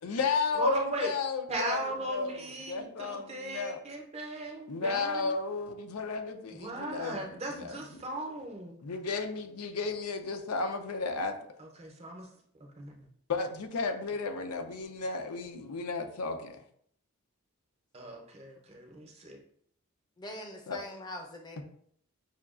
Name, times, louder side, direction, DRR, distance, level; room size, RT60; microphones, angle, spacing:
voice 1, 0.0-3.8 4.7-7.2 7.5-8.0 8.8-11.4 13.3-16.6 20.7-20.8, left 4 dB, 90° left, 6 dB, 0.5 m, -33 dB
voice 2, 0.5-1.1 1.5-5.4 6.5-8.8 11.6-12.3 12.8-13.0 17.9-19.4, right 1 dB, 30° right, 1 dB, 0.6 m, -37 dB
voice 3, 20.2-21.6, left 1 dB, 20° left, 3 dB, 0.5 m, -42 dB
5.6 x 2.3 x 2.4 m, 0.65 s
head